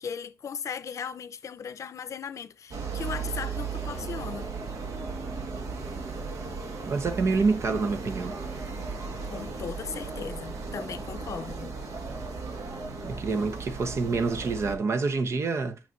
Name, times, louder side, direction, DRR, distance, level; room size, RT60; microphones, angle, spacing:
voice 1, 0.0-4.5 9.0-11.7, left 7 dB, 65° left, 0.7 m, -37 dB
sound 1, 2.7-14.8, right 4 dB, 90° right, 1.7 m, -36 dB
voice 2, 6.8-8.4 13.0-15.8, right 4 dB, 55° right, 1.0 m, -27 dB
9.4 x 5.9 x 2.7 m
wide cardioid pair, 130°, 6 cm